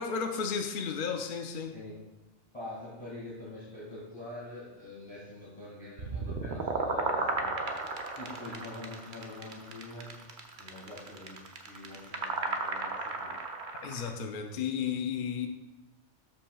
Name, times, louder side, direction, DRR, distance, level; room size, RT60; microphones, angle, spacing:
voice 1, 0.0-1.8 13.8-15.5, left 6 dB, 55° left, 0.6 m, -33 dB
voice 2, 1.6-2.0 2.5-10.2 10.6-13.5, left 2 dB, 25° left, 2.0 m, -45 dB
sound 1, 6.0-14.1, right 3 dB, 50° right, 0.8 m, -34 dB
13.0 x 5.4 x 2.3 m
omnidirectional pair, 1.2 m